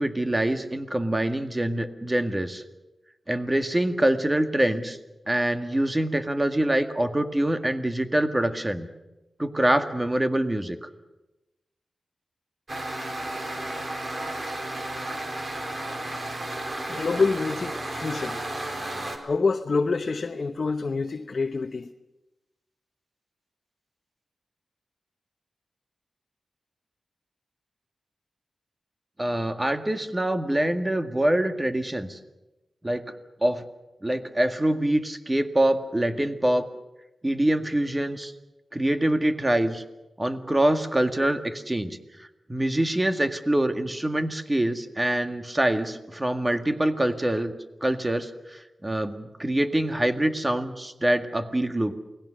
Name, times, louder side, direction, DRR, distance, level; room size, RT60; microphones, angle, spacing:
voice 1, 0.0-2.6 3.3-5.0 5.3-8.9 9.4-10.8 29.2-32.2 32.8-33.0 33.4-33.6 34.0-36.7 37.2-38.3 38.7-39.8 40.2-47.5 47.8-51.9, right 1 dB, 15° right, 1.8 m, -25 dB
sound 1, 12.7-19.2, right 1 dB, 35° right, 4.0 m, -33 dB
voice 2, 16.9-18.4 19.2-21.9, left 4 dB, 50° left, 1.0 m, -26 dB
28.5 x 19.5 x 6.5 m
wide cardioid pair, 95°, 0 cm